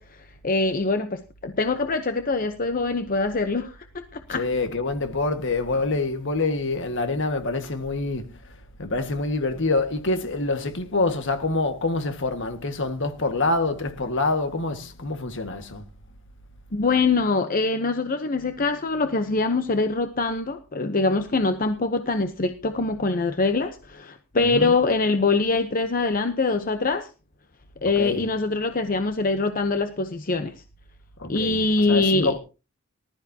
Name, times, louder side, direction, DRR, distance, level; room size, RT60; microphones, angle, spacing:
voice 1, 0.0-3.8 4.1-4.4 16.7-27.1 27.8-30.5 31.3-32.3, left 3 dB, 40° left, 0.9 m, -24 dB
voice 2, 4.3-15.8 24.4-24.8 27.9-28.3 31.2-32.4, left 2 dB, 60° left, 1.8 m, -26 dB
19.5 x 12.5 x 2.9 m
head